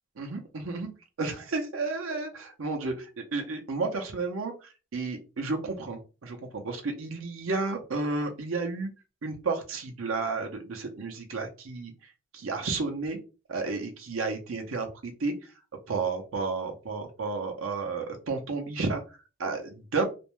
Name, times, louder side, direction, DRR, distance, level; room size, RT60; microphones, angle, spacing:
voice 1, 0.2-0.9 1.2-8.9 9.2-11.9 12.3-13.2 13.5-15.3 15.9-20.0, right 3 dB, 90° right, 3 dB, 0.6 m, -32 dB
2.5 x 2.1 x 3.0 m, 0.33 s
head